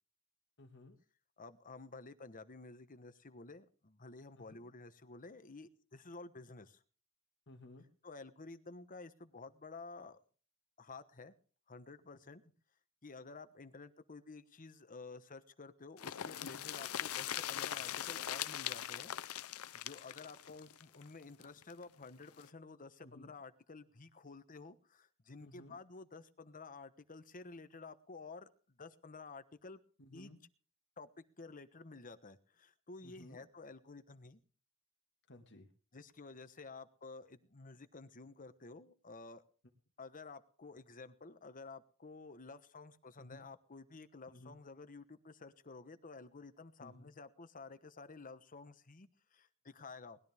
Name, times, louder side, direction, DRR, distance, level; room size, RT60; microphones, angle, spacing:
voice 1, 0.6-1.0 4.4-4.6 7.5-7.9 16.4-16.7 23.0-23.3 25.4-25.8 30.0-30.4 33.0-33.4 35.3-35.7 43.2-43.5 44.3-44.6 46.8-47.1, left 1 dB, 55° left, 3 dB, 1.8 m, -56 dB
voice 2, 1.4-6.8 8.0-10.2 10.8-11.3 11.7-12.4 13.0-19.1 19.4-29.8 30.1-30.3 31.0-34.4 35.9-39.4 40.0-50.2, left 3 dB, 40° left, 11 dB, 1.2 m, -52 dB
sound 1, 16.0-21.7 22.0-22.1 22.4-22.5, left 11 dB, 70° left, 0.6 m, -41 dB
20.0 x 13.0 x 3.5 m, 0.41 s
head